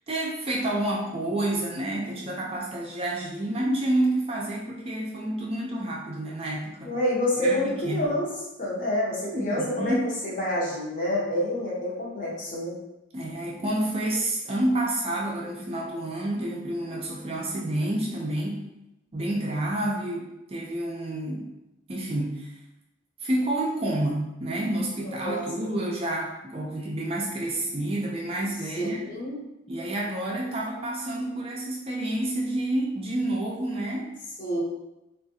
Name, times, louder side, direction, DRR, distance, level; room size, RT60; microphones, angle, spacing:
voice 1, 0.1-6.9 7.4-8.1 9.2-10.0 13.1-18.6 19.1-21.5 21.9-22.5 23.2-29.0 29.7-34.1, right 1 dB, 30° right, -3 dB, 0.4 m, -29 dB
voice 2, 6.8-8.3 8.6-10.0 10.2-12.8 25.2-25.9 28.8-29.4 34.4-34.6, left 1 dB, 40° left, -5 dB, 0.9 m, -28 dB
3.6 x 2.4 x 2.7 m, 0.93 s
head